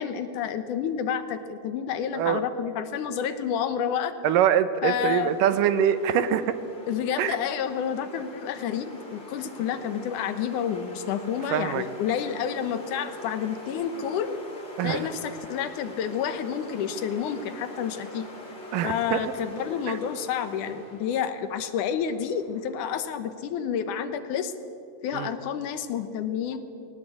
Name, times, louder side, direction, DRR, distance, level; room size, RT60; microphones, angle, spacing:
voice 1, 0.0-4.1 4.8-5.3 6.9-14.4 14.8-18.3 18.8-24.5 25.0-26.6, left 8 dB, 75° left, 10 dB, 2.5 m, -29 dB
voice 2, 4.2-6.6 7.2-7.4 11.5-11.8 14.8-15.1 18.7-19.3 19.9-20.0 25.1-25.3, right 9 dB, 85° right, 11 dB, 2.6 m, -24 dB
sound 1, 5.0-22.8, left 1 dB, 20° left, 2.9 m, -45 dB
20.0 x 18.0 x 8.4 m, 2.6 s
omnidirectional pair, 3.7 m